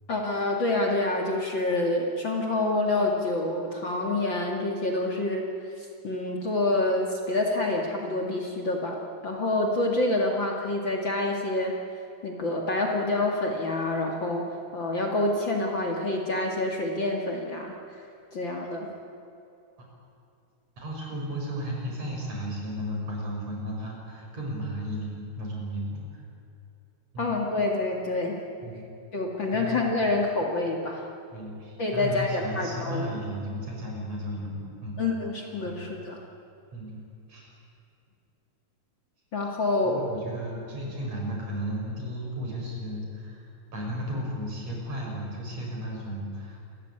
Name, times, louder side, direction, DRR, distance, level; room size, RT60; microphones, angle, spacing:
voice 1, 0.1-5.4 5.8-9.0 9.2-11.7 12.2-14.5 14.7-17.7 18.3-18.9 27.2-28.4 29.1-31.1 31.8-33.1 35.0-36.2 39.3-40.0, left 2 dB, 40° left, 0 dB, 2.6 m, -27 dB
voice 2, 20.8-26.2 27.1-27.4 28.6-28.9 29.5-30.1 31.3-35.0 35.6-35.8 36.7-37.0 37.3-37.5 39.8-46.6, equal, 55° right, -1 dB, 6.7 m, -34 dB
28.0 x 15.0 x 9.9 m, 2.6 s
omnidirectional pair, 3.6 m